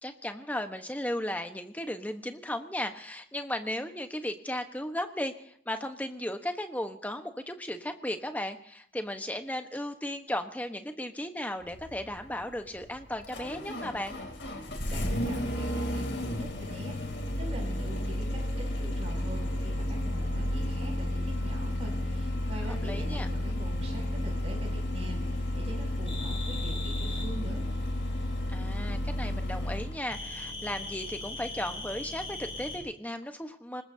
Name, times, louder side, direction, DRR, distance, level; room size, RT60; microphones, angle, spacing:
voice 1, 0.0-14.2 22.7-23.3 28.5-33.8, left 1 dB, 10° left, 6 dB, 1.2 m, -35 dB
Engine starting, 11.6-30.0, left 1 dB, 75° left, 3.1 m, -32 dB
voice 2, 14.9-27.6, equal, 35° right, 0 dB, 7.2 m, -44 dB
sound 1, 26.1-27.3 30.1-32.8, left 2 dB, 30° left, 4.4 m, -39 dB
25.5 x 20.5 x 2.8 m, 0.64 s
head